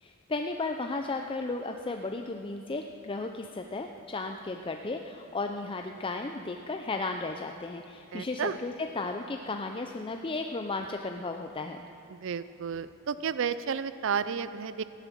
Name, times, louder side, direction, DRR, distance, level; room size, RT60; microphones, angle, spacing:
voice 1, 0.0-11.8, left 3 dB, 25° left, 4 dB, 0.5 m, -34 dB
voice 2, 8.1-8.6 12.1-14.8, right 6 dB, 65° right, 14 dB, 0.5 m, -32 dB
15.5 x 11.0 x 7.4 m, 2.7 s
head